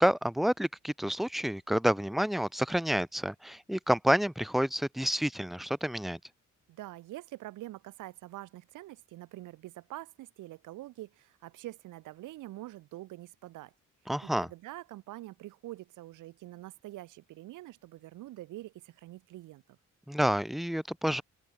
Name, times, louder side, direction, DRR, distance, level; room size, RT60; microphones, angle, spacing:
voice 1, 0.0-6.2 14.1-14.5 20.1-21.2, equal, ahead, 0.5 m, -29 dB
voice 2, 6.7-13.7 14.2-19.8, right 16 dB, 90° right, 1.8 m, -45 dB
open air
cardioid pair, 90°, 30 cm